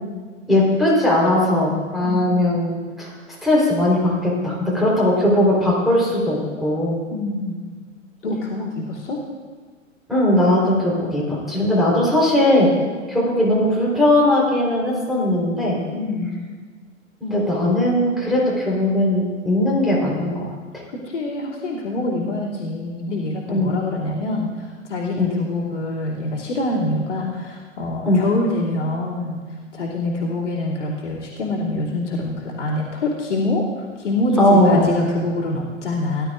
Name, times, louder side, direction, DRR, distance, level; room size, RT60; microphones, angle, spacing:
voice 1, 0.5-3.1 3.4-7.0 10.1-12.7 13.1-15.8 17.2-20.5 23.5-23.8 25.2-25.3 28.0-28.2 34.4-34.9, left 1 dB, ahead, -5 dB, 3.7 m, -19 dB
voice 2, 2.0-2.4 7.1-7.6 8.2-9.2 15.9-16.3 20.9-29.4 29.7-36.3, left 2 dB, 65° left, -4 dB, 2.7 m, -25 dB
17.5 x 12.0 x 2.5 m, 1.5 s
figure-of-eight pair, 100°, 39 cm